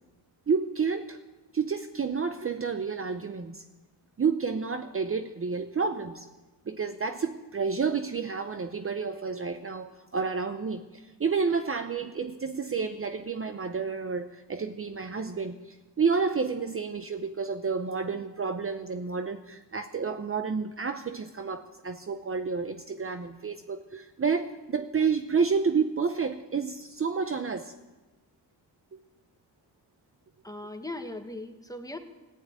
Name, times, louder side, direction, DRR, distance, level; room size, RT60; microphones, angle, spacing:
voice 1, 0.5-1.2 1.5-3.6 4.2-6.3 6.7-10.9 11.2-27.7 28.9-29.0, right 5 dB, 35° right, 8 dB, 0.7 m, -30 dB
voice 2, 30.4-32.0, left 2 dB, 10° left, 6 dB, 1.3 m, -38 dB
15.5 x 9.4 x 8.9 m, 1.2 s
wide cardioid pair, 110°, 41 cm